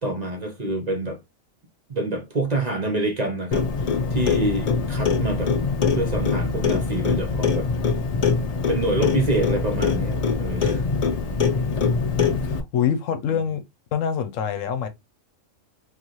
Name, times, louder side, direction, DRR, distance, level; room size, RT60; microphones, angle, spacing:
voice 1, 0.0-1.2 1.9-5.5 5.9-7.7 8.7-10.8, right 1 dB, 40° right, 0.7 m, -27 dB
Clock, 3.5-12.6, left 5 dB, 60° left, 0.4 m, -23 dB
voice 2, 12.0-13.6 13.9-14.9, left 8 dB, 80° left, 1.0 m, -25 dB
4.0 x 2.4 x 3.0 m
omnidirectional pair, 1.4 m